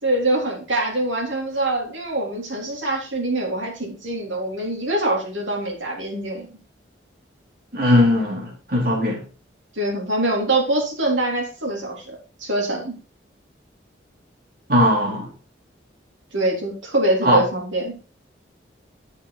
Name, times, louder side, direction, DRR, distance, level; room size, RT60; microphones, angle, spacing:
voice 1, 0.0-6.5 9.7-13.0 16.3-18.0, right 1 dB, 85° right, 3.5 m, -24 dB
voice 2, 7.7-9.2 14.7-15.3 17.2-17.4, left 1 dB, 50° right, 4.0 m, -19 dB
8.1 x 7.8 x 4.1 m
head